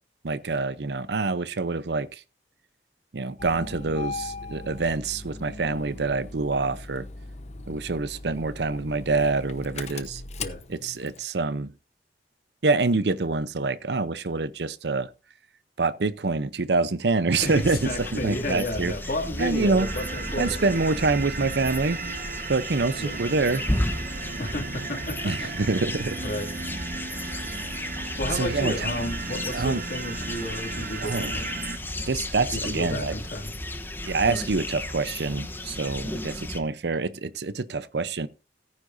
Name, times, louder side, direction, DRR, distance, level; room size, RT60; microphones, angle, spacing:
voice 1, 0.2-2.2 3.1-7.1 7.7-10.2 10.7-11.7 12.6-15.1 15.8-18.9 19.4-19.9 20.4-22.0 22.5-23.6 25.2-26.2 28.3-28.9 29.3-29.8 31.0-31.3 32.1-33.1 34.0-38.3, right 3 dB, 75° right, 0.7 m, -26 dB
Engine starting, 3.4-11.2, left 3 dB, 40° left, 0.9 m, -39 dB
sound 1, 17.3-36.6, left 1 dB, 10° left, 1.0 m, -34 dB
voice 2, 17.4-20.8 23.0-23.2 24.4-25.5 26.2-26.5 28.2-31.5 32.5-33.5, left 1 dB, 55° left, 2.5 m, -32 dB
sound 2, 19.8-31.8, right 4 dB, 50° right, 1.1 m, -36 dB
17.5 x 9.8 x 2.7 m
head